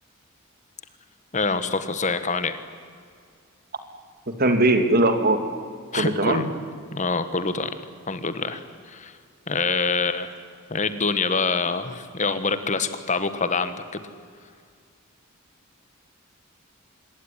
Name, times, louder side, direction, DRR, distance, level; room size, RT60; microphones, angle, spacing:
voice 1, 1.3-2.6 5.9-6.5 6.9-7.7 8.1-9.2 9.5-10.4 10.7-14.0, left 4 dB, 35° left, 11 dB, 1.5 m, -25 dB
voice 2, 4.4-5.4 5.9-6.5, right 2 dB, 45° right, 8 dB, 2.4 m, -20 dB
26.0 x 22.0 x 10.0 m, 2.1 s
head